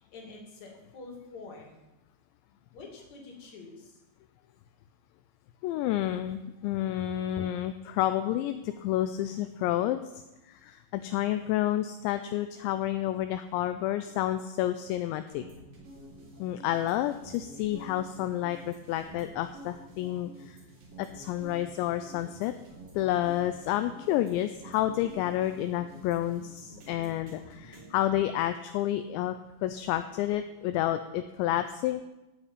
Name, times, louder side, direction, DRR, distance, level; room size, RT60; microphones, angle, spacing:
voice 1, 0.0-1.8 2.7-4.0, left 3 dB, 45° left, 0 dB, 3.4 m, -46 dB
voice 2, 5.6-15.4 16.4-20.6 21.0-22.5 22.9-32.0, left 13 dB, 85° left, 9 dB, 2.7 m, -30 dB
sound 1, 15.3-28.2, right 1 dB, 50° right, 4.8 m, -49 dB
15.5 x 5.8 x 8.3 m, 0.99 s
omnidirectional pair, 5.4 m